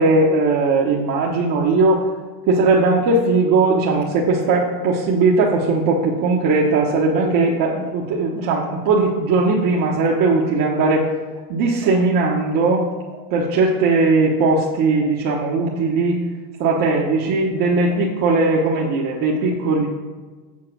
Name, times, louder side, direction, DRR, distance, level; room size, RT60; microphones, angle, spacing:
voice 1, 0.0-2.0 2.5-11.1 11.5-12.9 13.3-16.2 16.6-19.9, right 3 dB, 45° right, -3 dB, 1.2 m, -18 dB
7.6 x 5.5 x 6.1 m, 1.4 s
supercardioid pair, 125°, 48 cm